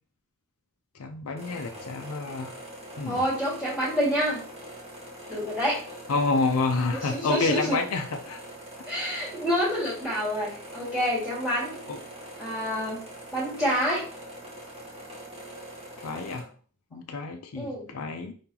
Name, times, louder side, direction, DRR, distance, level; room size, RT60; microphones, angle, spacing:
voice 1, 1.0-2.6 3.0-3.2 6.1-8.4 11.9-12.0 16.0-16.5 16.9-18.3, left 3 dB, 70° left, 4 dB, 0.5 m, -28 dB
sound 1, 1.4-16.4, equal, 30° right, 1.4 m, -43 dB
voice 2, 3.0-4.4 5.3-5.8 6.9-7.8 8.9-11.8 12.4-13.0 13.3-14.0 17.6-17.9, equal, ahead, -8 dB, 1.8 m, -27 dB
4.9 x 3.8 x 2.9 m, 0.42 s
head